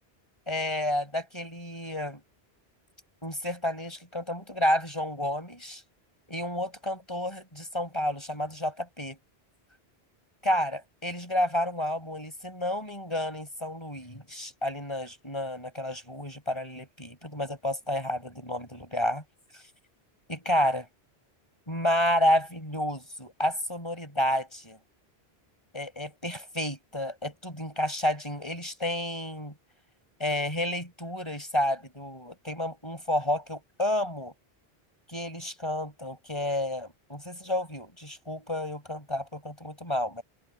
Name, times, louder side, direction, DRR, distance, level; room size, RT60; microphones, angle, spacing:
voice 1, 0.5-2.2 3.2-5.8 6.3-9.2 10.4-19.2 19.5-19.6 20.3-20.9 21.7-24.8 25.7-29.5 30.2-34.3 35.1-40.2, left 1 dB, 25° left, 6.0 m, -30 dB
omnidirectional pair, 1.1 m